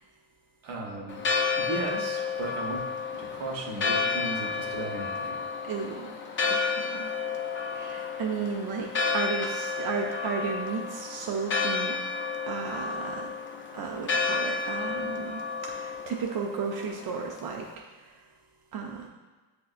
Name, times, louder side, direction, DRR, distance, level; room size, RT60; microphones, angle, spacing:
voice 1, 0.6-1.2 1.6-2.8 3.1-5.3, right 2 dB, 70° right, -1 dB, 1.1 m, -35 dB
Church bell, 1.1-17.7, left 4 dB, 25° left, 0.4 m, -31 dB
voice 2, 5.6-6.1 6.5-7.1 7.7-12.0 12.5-13.3 13.7-17.7 18.7-19.1, right 5 dB, 50° right, 0 dB, 0.5 m, -34 dB
7.4 x 2.8 x 2.4 m, 1.3 s
cardioid pair, 110°, 48 cm